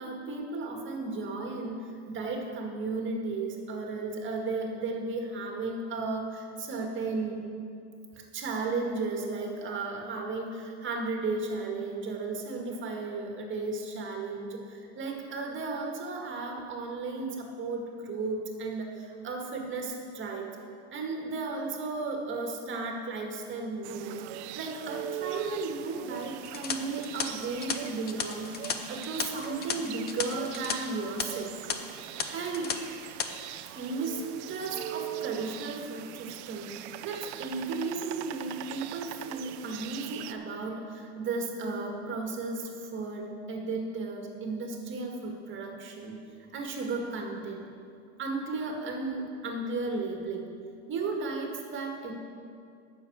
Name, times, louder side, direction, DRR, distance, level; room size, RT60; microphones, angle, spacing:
voice 1, 0.0-7.4 8.1-20.5 20.9-24.2 24.5-28.5 28.9-31.5 32.3-32.7 33.7-34.2 34.5-46.2 46.5-47.7 48.2-50.5 50.9-52.1, right 3 dB, 35° right, 2 dB, 2.0 m, -34 dB
sound 1, 23.8-40.3, right 13 dB, 70° right, 0.6 m, -41 dB
sound 2, 26.5-30.8 31.0-31.2 31.7-31.8 32.2-32.8 33.0-33.3, left 7 dB, 25° left, 0.7 m, -34 dB
9.6 x 6.8 x 7.9 m, 2.3 s
supercardioid pair, 125°, 35 cm